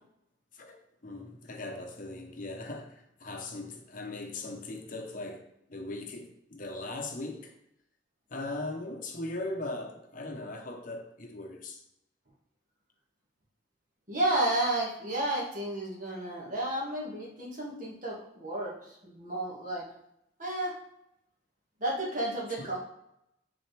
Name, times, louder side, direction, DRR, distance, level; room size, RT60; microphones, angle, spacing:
voice 1, 0.5-7.5 8.3-11.8 22.6-22.7, left 2 dB, 45° left, 0.9 m, -39 dB
voice 2, 14.1-19.9 20.4-20.8 21.8-22.8, right 1 dB, 45° right, 1.8 m, -32 dB
7.4 x 4.3 x 3.4 m
head